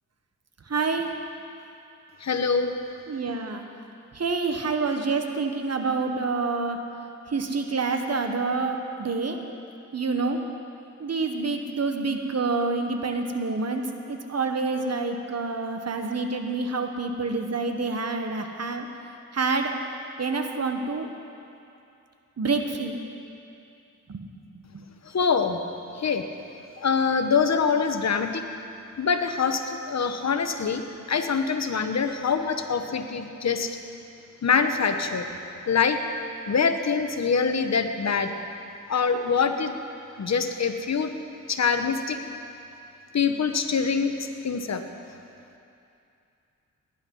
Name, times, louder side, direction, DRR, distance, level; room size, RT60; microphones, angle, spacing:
voice 1, 0.7-1.2 3.1-3.6 4.1-6.9 7.3-9.4 9.9-10.5 11.0-18.9 19.3-19.8 20.2-21.1 22.4-23.0 24.1-24.3 24.5-24.8, right 4 dB, 55° right, 5 dB, 1.3 m, -27 dB
voice 2, 2.2-2.7 25.0-25.6 25.9-26.2 26.8-28.4 29.0-30.8 31.1-33.8 34.4-35.3 35.7-36.0 36.5-38.3 38.9-39.7 40.2-41.1 41.5-42.2 43.1-44.8, left 5 dB, 60° left, 7 dB, 1.1 m, -24 dB
18.5 x 10.5 x 5.5 m, 2.6 s
cardioid pair, 70°, 31 cm